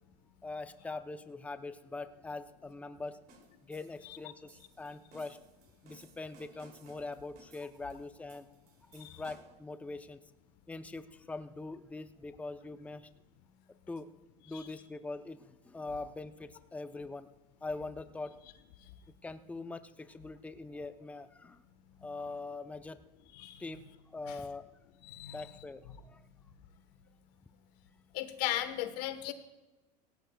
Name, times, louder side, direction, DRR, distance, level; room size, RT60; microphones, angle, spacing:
voice 1, 0.4-3.2 3.6-5.4 5.8-8.4 8.9-10.2 10.7-13.1 13.9-14.1 14.5-17.3 17.6-18.3 19.2-21.6 22.0-23.0 23.6-24.7 25.3-26.2, left 3 dB, 5° left, 10 dB, 0.6 m, -43 dB
sound 1, 3.3-9.7, right 3 dB, 50° right, 2.8 m, -61 dB
voice 2, 23.3-23.7 24.3-24.4 25.0-25.5 28.1-29.3, left 13 dB, 80° left, 11 dB, 1.2 m, -37 dB
18.0 x 16.5 x 2.3 m, 1.1 s
supercardioid pair, 115°, 20 cm